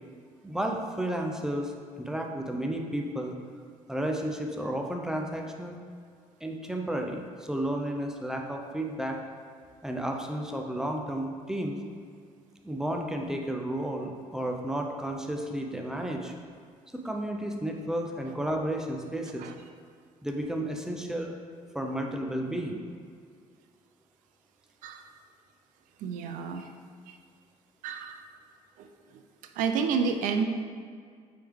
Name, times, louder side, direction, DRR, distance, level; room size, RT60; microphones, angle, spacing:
voice 1, 0.4-3.3 3.9-5.8 6.4-9.2 9.8-11.8 12.6-16.3 16.9-19.5 20.2-21.4 21.7-22.9, right 1 dB, 5° right, 2 dB, 0.5 m, -32 dB
voice 2, 26.0-26.7 27.1-27.2 27.8-28.2 28.8-28.9 29.1-29.2 29.6-30.4, right 6 dB, 90° right, 6 dB, 0.5 m, -30 dB
7.5 x 3.6 x 3.6 m, 2.1 s
cardioid pair, 135°, 13 cm